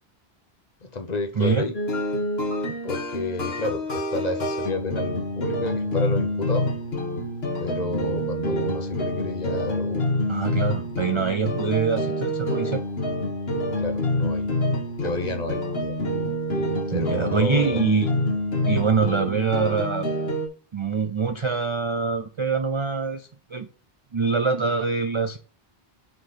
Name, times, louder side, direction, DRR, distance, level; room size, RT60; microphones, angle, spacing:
voice 1, 0.8-1.7 2.8-6.7 7.6-10.2 13.8-14.5 15.0-16.0 16.9-17.9, left 2 dB, 45° left, 1.0 m, -31 dB
sound 1, 1.7-20.5, left 1 dB, 80° left, 1.5 m, -27 dB
voice 2, 10.3-12.8 16.9-18.2 18.7-20.1 20.7-23.7 24.1-25.4, right 5 dB, 45° right, 0.4 m, -24 dB
5.0 x 4.1 x 5.4 m
omnidirectional pair, 1.0 m